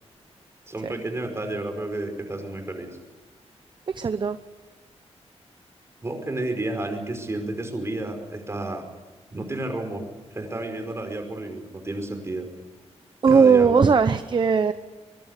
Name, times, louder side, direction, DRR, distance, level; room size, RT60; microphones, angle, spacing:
voice 1, 0.7-2.9 6.0-8.9 9.3-10.0 10.3-12.5 13.3-14.1, right 2 dB, 25° right, 5 dB, 5.4 m, -31 dB
voice 2, 3.9-4.4 13.2-14.7, right 5 dB, 40° right, 11 dB, 0.9 m, -18 dB
24.0 x 22.5 x 6.8 m, 1.4 s
wide cardioid pair, 125°, 11 cm